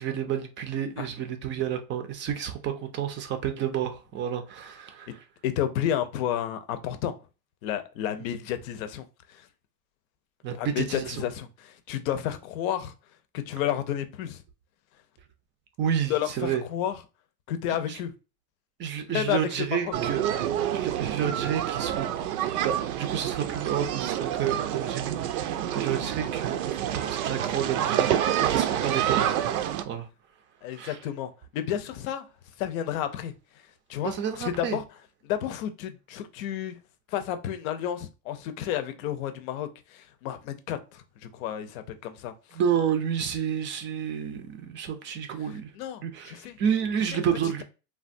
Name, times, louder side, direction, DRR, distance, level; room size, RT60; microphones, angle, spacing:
voice 1, 0.0-5.2 10.4-11.2 15.8-16.6 17.9-18.0 18.8-20.2 20.7-22.1 22.6-25.5 25.7-29.3 29.8-30.1 30.7-31.0 34.0-34.8 42.5-45.7 46.0-47.6, right 8 dB, 25° right, 0.4 m, -30 dB
voice 2, 5.4-7.1 7.6-9.5 10.5-12.9 13.3-14.4 16.1-17.0 17.5-18.1 19.1-19.9 30.6-32.2 32.6-33.3 33.9-34.8 35.2-36.8 37.1-42.6 45.7-46.6, left 10 dB, 70° left, 0.6 m, -31 dB
sound 1, 19.9-29.8, right 11 dB, 75° right, 0.6 m, -28 dB
3.3 x 2.2 x 2.5 m
supercardioid pair, 125°, 43 cm